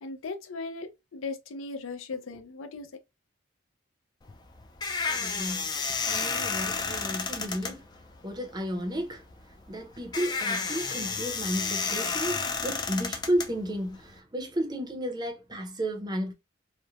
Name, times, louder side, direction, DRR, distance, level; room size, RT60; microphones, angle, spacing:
voice 1, 0.0-2.9, left 3 dB, 90° left, 0.5 m, -37 dB
sound 1, 4.2-14.2, left 5 dB, 20° left, 0.3 m, -32 dB
voice 2, 5.0-5.7 6.1-7.8 8.2-9.2 9.7-16.3, equal, 20° right, 0.6 m, -33 dB
3.0 x 2.1 x 2.4 m
head